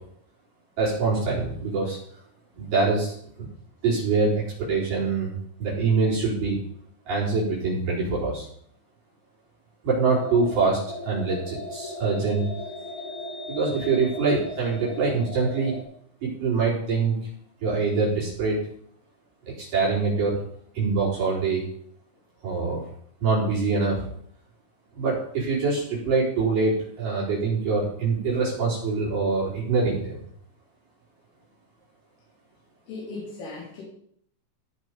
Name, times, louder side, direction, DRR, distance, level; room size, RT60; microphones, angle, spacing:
voice 1, 0.8-2.0 2.6-3.1 3.8-6.6 7.1-8.5 9.8-12.4 13.5-15.8 16.2-17.2 17.6-18.7 19.5-20.4 20.7-21.6 22.4-22.8 23.2-24.1 25.0-30.2, right 4 dB, 45° right, -7 dB, 6.2 m, -24 dB
sound 1, 10.1-15.8, left 2 dB, 20° left, 4.0 m, -37 dB
voice 2, 32.9-33.8, left 3 dB, 85° left, -6 dB, 6.4 m, -37 dB
17.0 x 6.4 x 5.2 m, 0.66 s
omnidirectional pair, 5.4 m